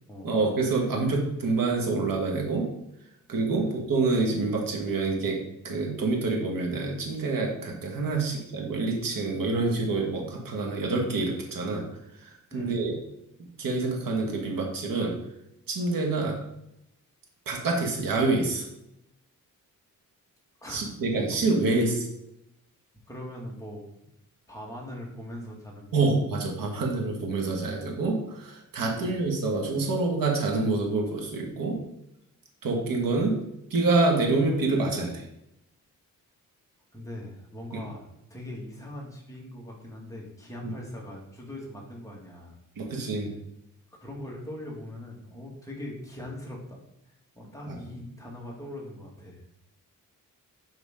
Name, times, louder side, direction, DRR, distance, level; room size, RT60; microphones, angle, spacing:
voice 1, 0.2-2.7 3.3-11.9 12.1-13.0 13.6-15.2 15.7-16.4 17.5-18.7 20.7-22.1 25.9-31.8 32.6-33.4 33.7-35.2 37.7-37.8 40.6-40.7 42.8-43.3 47.7-47.8, right 3 dB, 75° right, 0 dB, 1.8 m, -27 dB
voice 2, 23.1-23.8 24.5-26.1 29.0-29.2 36.9-42.6 44.0-46.8 47.4-49.4, left 1 dB, 10° left, -3 dB, 1.9 m, -41 dB
8.2 x 5.8 x 3.8 m, 0.82 s
wide cardioid pair, 120°, 34 cm